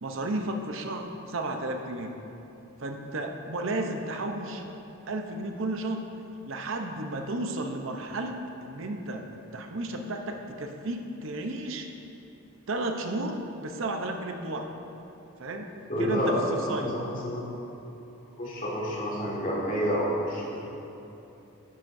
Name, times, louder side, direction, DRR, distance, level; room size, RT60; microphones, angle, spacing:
voice 1, 0.0-2.1 2.8-4.6 5.1-6.0 6.5-9.2 9.5-11.9 12.7-14.7 15.4-15.7 16.0-16.4 16.7-16.9, right 2 dB, 65° right, 4 dB, 0.8 m, -33 dB
voice 2, 15.9-17.4 18.4-20.6, equal, 40° left, -7 dB, 2.2 m, -29 dB
11.5 x 9.9 x 2.7 m, 3.0 s
head